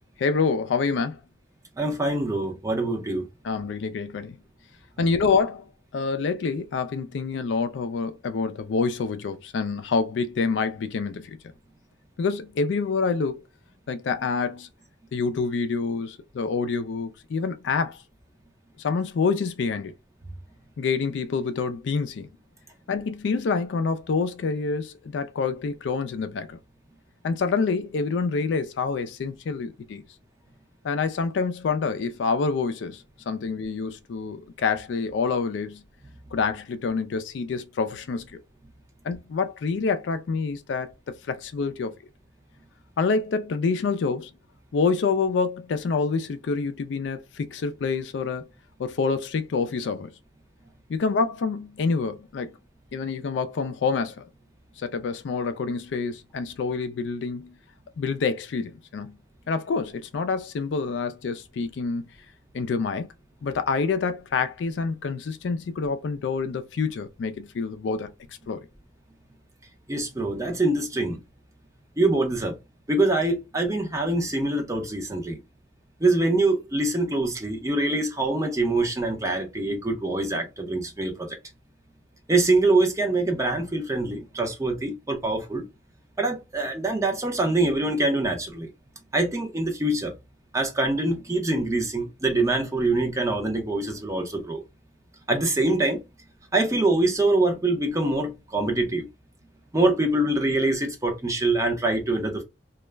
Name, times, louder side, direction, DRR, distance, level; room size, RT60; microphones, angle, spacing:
voice 1, 0.2-1.2 3.4-4.4 5.0-5.6 5.9-11.4 12.2-13.4 13.9-14.7 15.1-18.0 18.8-19.9 20.8-22.3 22.9-26.6 27.2-30.0 30.8-35.8 36.3-38.4 39.0-40.9 41.3-41.9 43.0-44.3 44.7-48.5 48.8-50.1 50.9-52.6 52.9-54.2 54.8-57.6 58.0-59.2 59.5-62.1 62.5-63.1 63.4-68.1 68.5-68.7, left 4 dB, 75° left, 0.4 m, -27 dB
voice 2, 1.8-3.3 5.0-5.2 69.9-71.2 72.0-72.6 72.9-75.4 76.0-81.4 82.3-85.7 86.2-88.7 89.1-90.1 90.5-94.6 95.3-96.0 96.5-99.1 99.7-102.4, right 2 dB, 15° right, 0.5 m, -24 dB
2.3 x 2.0 x 3.2 m
head